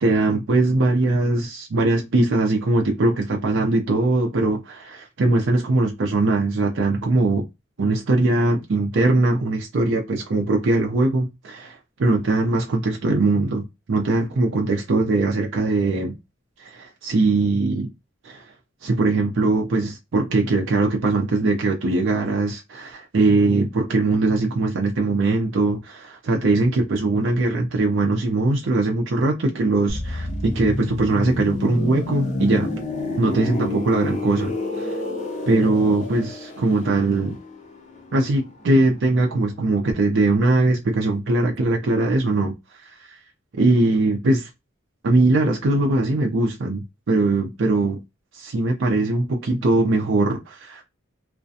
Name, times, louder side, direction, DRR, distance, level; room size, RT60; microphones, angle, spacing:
voice 1, 0.0-7.4 7.8-16.2 16.6-17.9 18.2-18.5 18.8-32.7 33.2-35.0 35.5-37.4 38.1-42.5 42.8-43.2 43.5-44.5 45.0-48.0 48.3-50.8, right 2 dB, 65° right, 0.5 m, -21 dB
sound 1, 29.9-39.5 39.8-40.0, left 2 dB, 35° left, 0.5 m, -30 dB
2.4 x 2.2 x 2.6 m
head